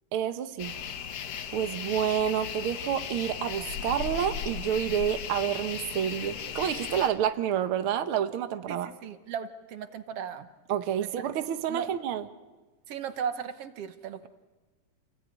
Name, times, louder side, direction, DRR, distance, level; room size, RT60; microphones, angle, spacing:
voice 1, 0.1-0.7 1.5-8.9 10.7-12.2, right 9 dB, 80° right, 9 dB, 1.2 m, -29 dB
sound 1, 0.6-7.1, left 8 dB, 85° left, 3.6 m, -36 dB
voice 2, 8.7-10.5 11.0-11.3 11.7-11.9 12.9-14.3, right 7 dB, 65° right, 10 dB, 1.6 m, -36 dB
28.5 x 20.5 x 9.4 m, 1.3 s
omnidirectional pair, 4.0 m